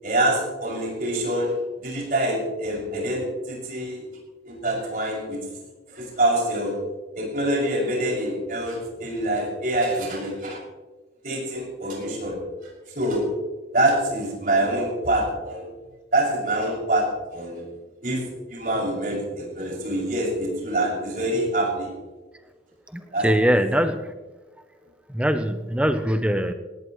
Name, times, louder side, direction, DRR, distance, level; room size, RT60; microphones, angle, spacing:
voice 1, 0.0-1.5 1.8-4.0 4.4-5.4 5.9-6.8 7.2-10.6 11.2-12.3 12.9-13.2 13.7-15.7 16.1-17.1 17.3-17.6 18.0-21.9 23.1-23.3, right 1 dB, 50° right, -3 dB, 6.2 m, -25 dB
voice 2, 22.9-24.2 25.1-26.5, equal, 5° right, 8 dB, 0.6 m, -22 dB
19.0 x 18.0 x 3.1 m, 1.2 s
head